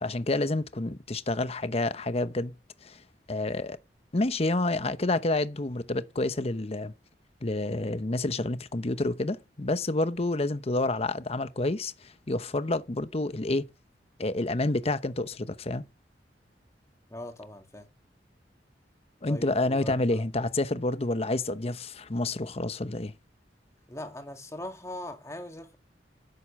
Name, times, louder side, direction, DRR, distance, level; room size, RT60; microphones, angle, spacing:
voice 1, 0.0-2.5 2.8-3.0 3.3-3.8 4.1-6.9 7.4-13.7 14.2-15.8 19.2-23.1, left 2 dB, 35° left, 0.9 m, -29 dB
voice 2, 17.1-17.9 19.3-20.3 23.9-25.8, left 1 dB, 15° left, 2.6 m, -40 dB
11.5 x 7.9 x 8.6 m
head